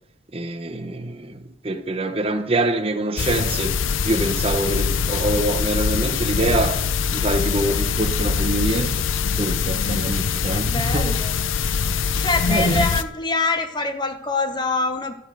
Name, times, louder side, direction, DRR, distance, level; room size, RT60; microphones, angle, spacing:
voice 1, 0.3-3.8 4.0-6.8 7.1-11.2 12.5-12.9, right 2 dB, 30° right, 0.8 m, -25 dB
sound 1, 3.2-13.0, left 6 dB, 90° left, 0.6 m, -23 dB
voice 2, 10.5-11.4 12.0-15.1, left 3 dB, 25° left, 1.1 m, -25 dB
12.5 x 9.6 x 6.5 m
head